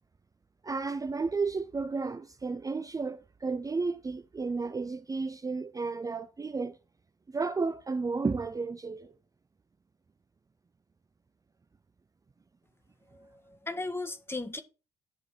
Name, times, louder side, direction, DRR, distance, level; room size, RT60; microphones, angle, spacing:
voice 1, 0.6-6.8 7.3-9.1, right 4 dB, 20° right, 0.7 m, -32 dB
voice 2, 13.1-14.6, left 2 dB, 15° left, 1.7 m, -37 dB
11.5 x 4.8 x 4.9 m
figure-of-eight pair, 45°, 16 cm